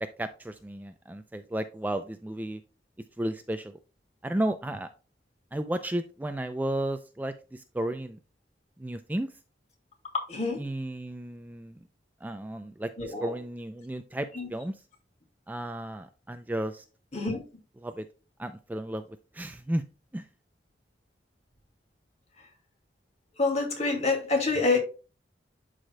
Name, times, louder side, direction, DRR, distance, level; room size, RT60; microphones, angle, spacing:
voice 1, 0.0-2.6 3.2-3.8 4.2-4.9 5.5-8.2 8.8-9.3 10.6-11.8 12.2-14.8 15.5-16.8 17.8-18.1 18.4-19.8 20.1-20.3, right 1 dB, 10° right, 8 dB, 0.4 m, -33 dB
voice 2, 10.3-10.6 13.0-13.3 14.3-14.5 17.1-17.4 23.4-24.8, left 3 dB, 40° left, 2 dB, 2.3 m, -27 dB
11.5 x 4.9 x 2.2 m, 0.33 s
head